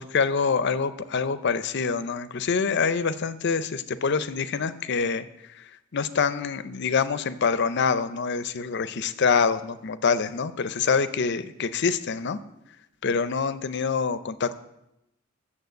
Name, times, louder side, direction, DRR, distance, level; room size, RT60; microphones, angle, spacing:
voice 1, 0.0-12.4 13.0-14.6, left 5 dB, 60° left, 13 dB, 0.6 m, -26 dB
9.4 x 7.1 x 7.9 m, 0.89 s
head